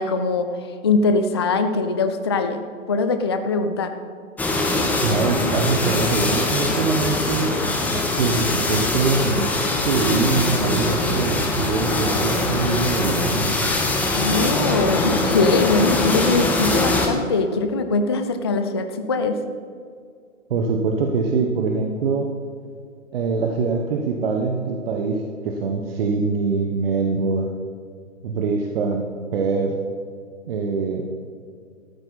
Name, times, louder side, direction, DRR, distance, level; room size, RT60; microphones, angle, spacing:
voice 1, 0.0-3.9 14.2-19.4, left 3 dB, 20° left, 7 dB, 0.3 m, -22 dB
sound 1, 4.4-17.1, left 2 dB, 5° left, 0.9 m, -22 dB
voice 2, 5.0-7.6 8.2-9.5 9.8-13.5 20.5-22.3 23.1-27.5 28.2-29.1 29.3-29.8 30.5-31.1, right 4 dB, 45° right, 2 dB, 1.3 m, -23 dB
13.5 x 12.0 x 4.2 m, 2.2 s
figure-of-eight pair, 135°, 40 cm